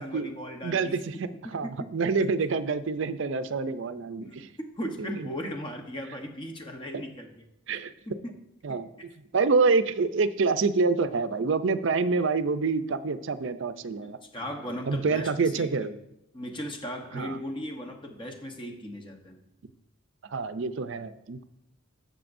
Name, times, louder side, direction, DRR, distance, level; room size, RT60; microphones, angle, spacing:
voice 1, 0.0-1.0 1.4-1.7 4.2-4.3 4.8-7.4 8.1-8.4 14.0-15.9 16.3-19.4, equal, 20° left, 3 dB, 1.0 m, -37 dB
voice 2, 0.6-4.5 5.0-5.3 6.9-7.0 7.7-7.9 8.6-8.9 9.3-14.2 14.9-15.9 17.1-17.4 20.3-21.4, right 4 dB, 55° right, 12 dB, 0.5 m, -27 dB
13.5 x 6.7 x 2.6 m, 0.87 s
head